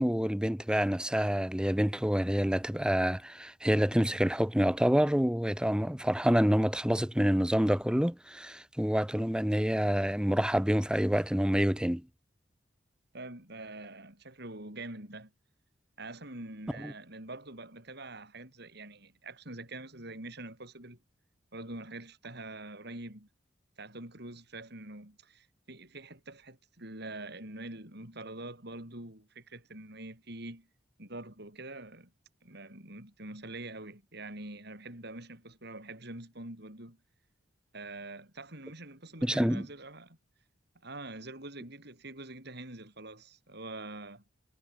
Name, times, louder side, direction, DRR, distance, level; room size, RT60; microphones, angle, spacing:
voice 1, 0.0-12.1 16.8-16.9 39.2-39.7, equal, 5° right, 0.9 m, -27 dB
voice 2, 13.1-15.3 16.0-21.0 21.5-23.3 23.8-30.7 31.0-32.1 32.4-37.0 37.7-40.2 40.8-44.2, right 2 dB, 60° right, 7.7 m, -45 dB
head